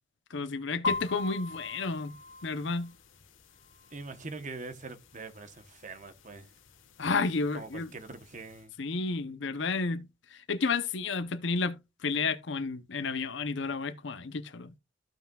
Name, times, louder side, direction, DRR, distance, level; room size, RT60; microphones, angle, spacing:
voice 1, 0.3-2.1 2.4-2.9 7.0-7.9 8.8-14.7, left 4 dB, 65° left, 0.7 m, -31 dB
sound 1, 0.8-8.7, left 3 dB, 80° left, 1.4 m, -42 dB
voice 2, 3.9-6.5 7.5-8.7, right 3 dB, 40° right, 1.0 m, -43 dB
14.5 x 5.7 x 2.3 m
head